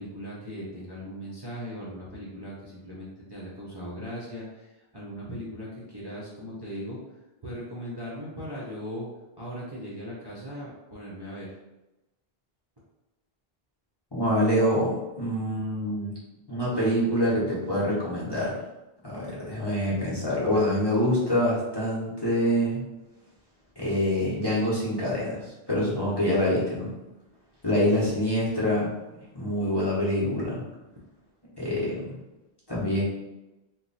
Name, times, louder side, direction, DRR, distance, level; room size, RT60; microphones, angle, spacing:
voice 1, 0.0-7.0 7.4-9.1 9.4-11.5, equal, 30° right, -8 dB, 0.7 m, -38 dB
voice 2, 14.1-16.1 16.5-18.5 19.0-22.8 23.8-26.9 27.6-28.9 29.3-30.6 31.6-32.2 32.7-33.0, equal, 25° left, -8 dB, 0.9 m, -25 dB
3.0 x 2.2 x 4.0 m, 1.0 s
omnidirectional pair, 1.0 m